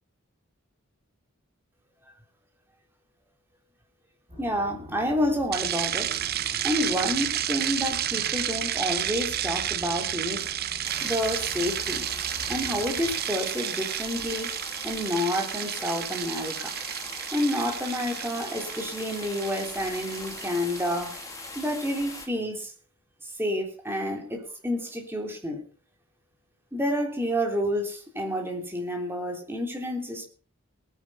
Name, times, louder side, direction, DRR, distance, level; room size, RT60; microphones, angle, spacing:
sound 1, 4.3-13.2, equal, 25° right, 5.8 m, -46 dB
voice 1, 4.4-6.1 6.6-10.4 11.0-12.0 12.5-16.7 17.3-21.1 21.5-22.7 23.2-25.6 26.7-30.3, equal, 10° right, 2 dB, 3.5 m, -29 dB
sound 2, 5.5-21.8, right 11 dB, 45° right, 0.7 m, -31 dB
sound 3, 10.8-22.3, left 3 dB, 15° left, 2.4 m, -41 dB
19.5 x 9.7 x 5.7 m, 0.40 s
head